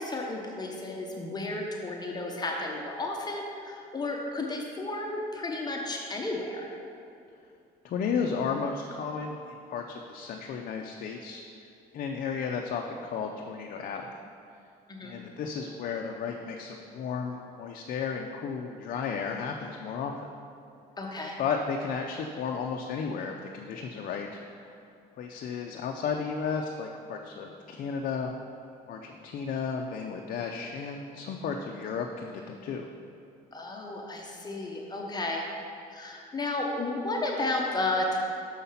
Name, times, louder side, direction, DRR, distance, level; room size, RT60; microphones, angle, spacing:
voice 1, 0.0-6.7 14.9-15.2 21.0-21.4 33.5-35.4 35.9-38.2, left 2 dB, 25° left, 0 dB, 0.8 m, -33 dB
voice 2, 7.8-11.4 11.9-14.1 15.0-20.2 21.4-24.7 25.2-28.3 28.9-32.9, left 6 dB, 55° left, 2 dB, 0.5 m, -33 dB
6.4 x 5.5 x 5.7 m, 2.5 s
cardioid pair, 110°, 17 cm